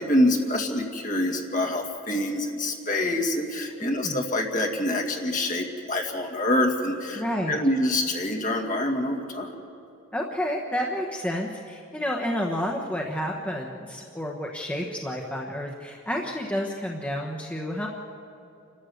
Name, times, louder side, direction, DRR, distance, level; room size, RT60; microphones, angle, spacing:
voice 1, 0.0-9.5, left 1 dB, 40° left, 2 dB, 2.1 m, -26 dB
voice 2, 3.8-4.2 7.1-7.6 10.1-17.9, equal, 5° left, -1 dB, 1.1 m, -30 dB
28.5 x 13.0 x 7.9 m, 2.7 s
head